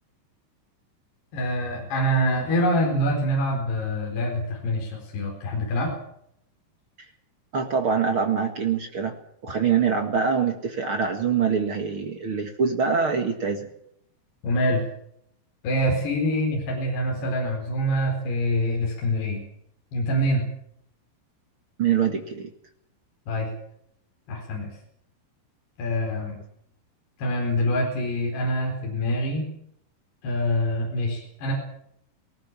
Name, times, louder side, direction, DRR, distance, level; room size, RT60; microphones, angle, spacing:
voice 1, 1.3-5.9 14.4-14.8 15.6-19.4 19.9-20.5 23.3-23.5 24.3-24.7 25.8-26.4 27.2-29.5 30.2-31.5, equal, 65° left, 0 dB, 6.4 m, -25 dB
voice 2, 7.5-9.2 9.4-13.7 21.8-22.5, right 6 dB, 55° right, 4 dB, 1.4 m, -24 dB
19.5 x 19.0 x 7.4 m, 0.72 s
omnidirectional pair, 5.3 m